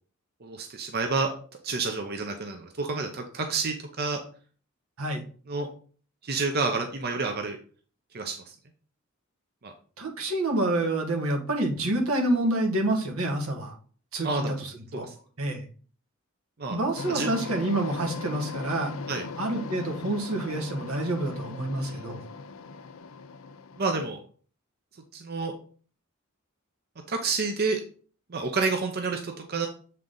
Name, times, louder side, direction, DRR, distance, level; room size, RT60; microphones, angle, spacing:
voice 1, 0.4-1.3 1.6-4.2 5.5-5.7 6.2-7.6 8.1-8.6 9.6-9.7 14.2-14.6 14.9-15.1 16.6-16.8 17.1-17.3 19.1-19.2 21.7-22.0 23.8-24.2 25.1-25.5 27.1-27.8 28.3-29.7, right 4 dB, 50° right, 5 dB, 0.7 m, -29 dB
voice 2, 10.0-13.7 14.1-15.1 15.4-15.6 16.7-18.9 19.4-22.2, right 1 dB, 90° right, 1 dB, 1.6 m, -28 dB
sound 1, 17.0-23.8, left 4 dB, 75° left, 0.5 m, -38 dB
7.7 x 3.8 x 3.8 m, 0.43 s
head